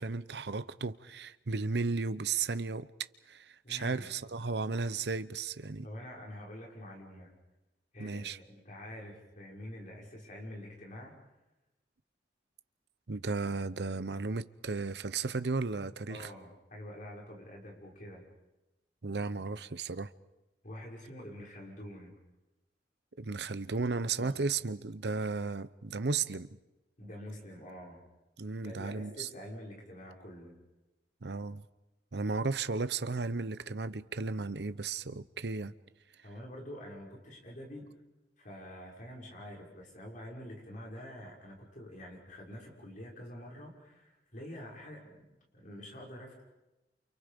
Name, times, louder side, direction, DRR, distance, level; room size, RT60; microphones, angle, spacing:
voice 1, 0.0-2.9 3.3-5.9 8.0-8.4 13.1-16.3 19.0-20.1 23.2-26.6 28.4-29.3 31.2-31.6 32.1-35.8, right 4 dB, 65° right, 0.8 m, -34 dB
voice 2, 3.6-4.1 5.8-7.3 7.9-11.1 16.1-18.3 20.6-22.1 24.2-24.4 27.0-28.0 28.6-30.6 36.2-37.9 38.4-45.2 45.5-46.4, equal, 45° left, 6.3 m, -46 dB
29.5 x 28.5 x 5.3 m
head